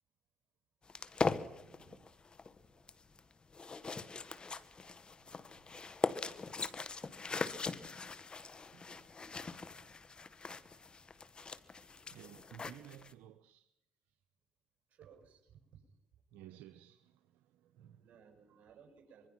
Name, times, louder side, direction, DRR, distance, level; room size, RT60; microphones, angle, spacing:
sound 1, 0.9-13.1, left 4 dB, 35° left, 1.5 m, -41 dB
voice 1, 1.6-2.1 5.7-5.9 8.7-9.4 9.8-9.9 11.7-13.7 16.3-18.1, right 11 dB, 85° right, 0.9 m, -57 dB
voice 2, 14.9-15.8 17.9-19.3, right 7 dB, 55° right, 6.7 m, -61 dB
25.5 x 22.5 x 6.0 m
supercardioid pair, 70°, 3 cm